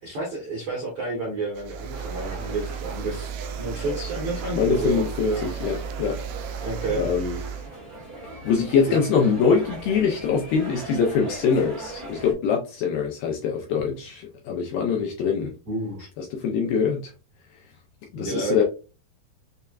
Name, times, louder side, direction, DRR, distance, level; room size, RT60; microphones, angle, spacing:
voice 1, 0.0-5.4 6.6-7.0 8.9-9.0 15.7-16.1 18.1-18.6, right 3 dB, 70° right, -4 dB, 1.3 m, -30 dB
sound 1, 1.5-7.7, right 8 dB, 90° right, 1.9 m, -34 dB
sound 2, 1.9-12.3, right 2 dB, 40° right, 0.9 m, -39 dB
voice 2, 4.6-6.2 6.9-7.4 8.4-15.5 16.2-17.1 18.1-18.6, left 6 dB, 80° left, 0 dB, 2.0 m, -23 dB
6.5 x 2.2 x 2.3 m, 0.32 s
omnidirectional pair, 4.5 m